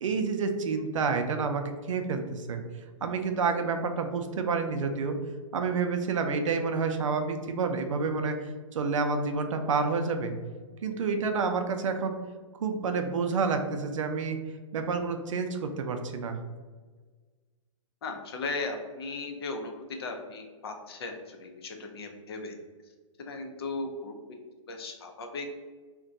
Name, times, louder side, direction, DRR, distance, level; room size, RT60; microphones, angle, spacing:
voice 1, 0.0-2.6 3.0-5.2 5.5-8.4 8.7-10.3 10.8-12.2 12.6-14.4 14.7-16.4, right 4 dB, 70° right, 6 dB, 0.5 m, -29 dB
voice 2, 18.0-19.7 20.0-22.5 23.2-24.1 24.7-25.5, left 3 dB, 50° left, 4 dB, 0.5 m, -37 dB
2.5 x 2.2 x 3.7 m, 1.4 s
hypercardioid pair, 165°, 17 cm